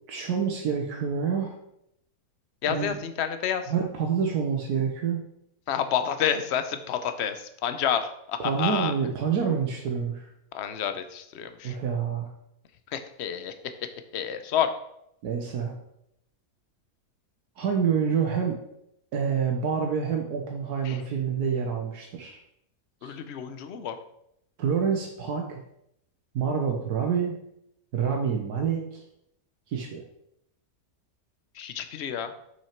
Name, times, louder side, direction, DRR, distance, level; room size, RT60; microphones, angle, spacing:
voice 1, 0.1-1.5 2.7-3.0 3.7-5.2 8.4-10.3 11.6-12.3 15.2-15.7 17.6-18.6 19.1-22.4 23.0-23.1 24.6-25.6 26.3-27.4 27.9-29.0 29.7-30.0, right 6 dB, 75° right, 1 dB, 1.4 m, -27 dB
voice 2, 2.6-3.6 5.7-8.9 10.5-11.8 12.9-13.5 14.1-14.7 20.9-21.0 23.0-24.0 31.6-32.3, left 9 dB, 55° left, 9 dB, 0.8 m, -29 dB
7.2 x 6.0 x 4.4 m, 0.77 s
omnidirectional pair, 1.7 m